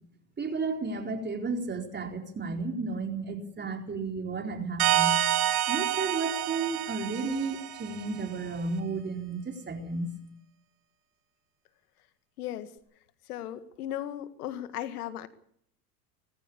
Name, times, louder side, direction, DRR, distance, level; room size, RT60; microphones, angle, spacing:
voice 1, 0.4-5.1 5.7-10.1, right 4 dB, 25° right, 4 dB, 4.3 m, -33 dB
sound 1, 4.8-8.2, right 14 dB, 75° right, 2.8 m, -28 dB
voice 2, 12.4-12.7 13.3-15.3, left 12 dB, 80° left, 12 dB, 1.9 m, -36 dB
20.0 x 15.0 x 8.5 m, 0.67 s
hypercardioid pair, 95°, 45 cm